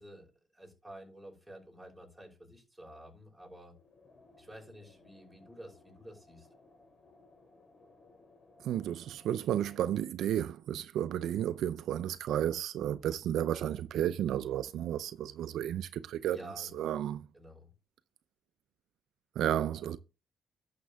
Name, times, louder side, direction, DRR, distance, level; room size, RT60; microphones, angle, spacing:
voice 1, 0.0-3.7 4.4-6.5 16.3-16.9 17.3-17.7, right 1 dB, ahead, 5.5 m, -51 dB
sound 1, 3.7-9.9, left 3 dB, 45° left, 3.1 m, -61 dB
voice 2, 8.6-17.3 19.4-20.0, right 11 dB, 80° right, 0.5 m, -32 dB
11.5 x 6.7 x 3.5 m
cardioid pair, 90°, 0 cm